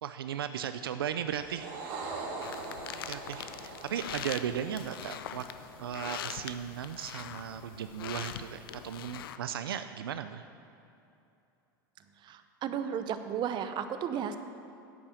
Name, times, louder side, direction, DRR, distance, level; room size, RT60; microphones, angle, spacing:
voice 1, 0.0-1.7 3.1-5.4 5.8-10.4, right 9 dB, 85° right, 10 dB, 0.5 m, -36 dB
sound 1, 1.3-5.9, right 3 dB, 65° right, 2.1 m, -42 dB
sound 2, 2.4-9.4, left 10 dB, 80° left, 0.5 m, -42 dB
voice 2, 12.2-14.4, right 8 dB, 40° right, 9 dB, 0.8 m, -34 dB
8.6 x 8.6 x 7.1 m, 2.7 s
hypercardioid pair, 100°, 12 cm